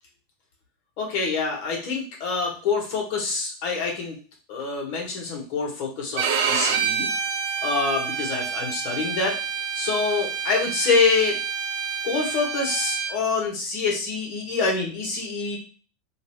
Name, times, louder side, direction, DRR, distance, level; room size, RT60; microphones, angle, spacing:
voice 1, 1.0-4.2 4.5-7.1 7.6-9.4 9.7-11.4 12.0-15.6, left 4 dB, 60° left, -1 dB, 1.3 m, -26 dB
Bowed string instrument, 6.2-13.1, right 6 dB, 70° right, 0.5 m, -28 dB
2.6 x 2.3 x 3.5 m, 0.38 s
hypercardioid pair, 105°, 0 cm